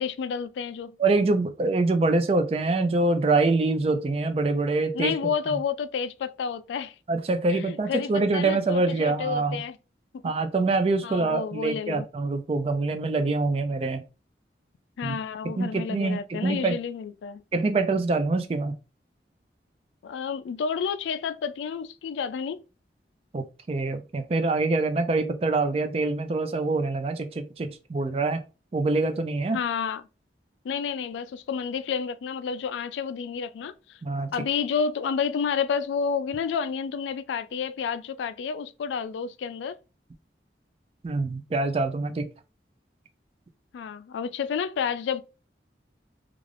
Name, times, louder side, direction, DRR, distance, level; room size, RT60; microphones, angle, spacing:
voice 1, 0.0-1.0 4.9-7.0 7.5-9.8 10.2-10.3 11.0-12.1 15.0-17.4 20.0-22.6 29.5-30.0 30.6-34.0 34.3-39.8 43.7-45.2, left 6 dB, 85° left, 0.3 m, -30 dB
voice 2, 1.0-5.6 7.1-9.6 10.2-14.0 15.0-15.2 15.6-16.7 17.5-18.8 23.3-28.4 28.7-29.6 34.0-34.3 41.0-42.3, right 3 dB, 35° right, 0.3 m, -25 dB
2.4 x 2.4 x 3.2 m
head